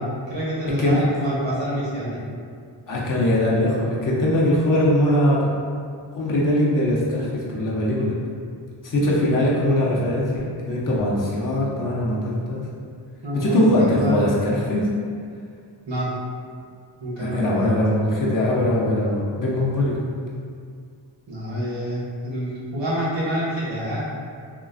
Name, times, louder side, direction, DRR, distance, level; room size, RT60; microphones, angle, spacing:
voice 1, 0.3-2.2 13.2-14.4 15.9-16.1 17.0-17.7 21.3-24.1, equal, 80° right, -7 dB, 1.0 m, -27 dB
voice 2, 2.9-5.5 6.1-8.1 8.8-12.7 13.3-14.9 17.2-20.0, left 1 dB, 45° left, -5 dB, 0.6 m, -21 dB
2.9 x 2.4 x 2.4 m, 2.2 s
wide cardioid pair, 105°, 44 cm